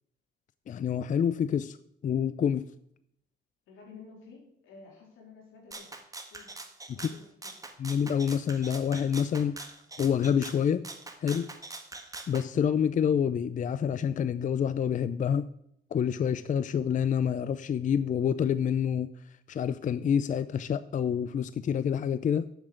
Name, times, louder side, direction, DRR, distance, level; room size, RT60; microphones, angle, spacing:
voice 1, 0.7-1.8 2.0-2.7 6.9-7.1 7.8-9.6 10.0-10.8 11.2-11.5 12.3-15.5 15.9-19.1 19.5-22.5, left 8 dB, 40° left, 14 dB, 0.4 m, -27 dB
voice 2, 3.7-5.9 6.3-6.5 6.9-7.5, left 4 dB, 85° left, 0 dB, 3.8 m, -51 dB
Rattle (instrument), 5.7-12.5, right 2 dB, 15° right, 1.4 m, -43 dB
7.4 x 7.3 x 7.8 m, 0.73 s
cardioid pair, 90°, 20 cm